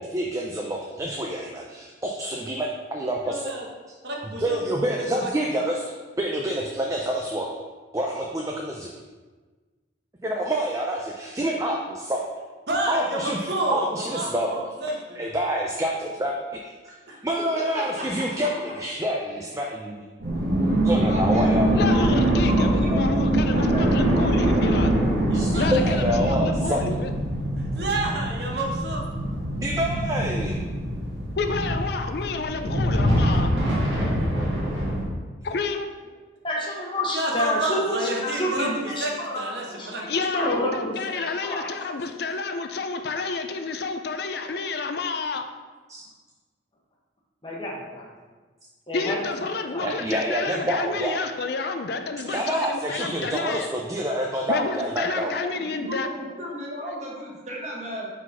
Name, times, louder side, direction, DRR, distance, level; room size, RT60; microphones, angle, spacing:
voice 1, 0.0-3.5 4.4-5.8 6.2-7.5 7.9-8.9 10.2-12.2 12.9-13.4 13.7-14.5 15.2-16.4 16.6-20.1 20.8-21.8 25.3-26.8 29.6-30.6 45.9-46.0 49.8-51.3 52.3-55.3, right 1 dB, 15° right, -1 dB, 0.4 m, -27 dB
voice 2, 3.2-3.6 4.0-4.7 5.1-5.3 12.7-13.9 14.1-15.3 25.3-25.7 27.7-29.0 37.1-40.0, right 1 dB, 60° right, -1 dB, 1.1 m, -29 dB
voice 3, 17.7-18.3 21.0-24.1 55.0-58.1, equal, 35° right, -3 dB, 1.3 m, -34 dB
ambient ghost, 20.2-35.0, right 1 dB, 85° right, 1.7 m, -23 dB
voice 4, 21.7-24.9 25.6-27.1 31.4-33.5 35.4-35.9 40.1-45.5 48.9-53.7 54.5-56.1 56.8-57.0, left 4 dB, 55° left, 7 dB, 0.4 m, -30 dB
voice 5, 36.4-41.7 47.4-48.0 48.9-49.2 49.7-50.2, left 1 dB, 25° left, -2 dB, 1.0 m, -29 dB
4.9 x 4.0 x 5.5 m, 1.3 s
head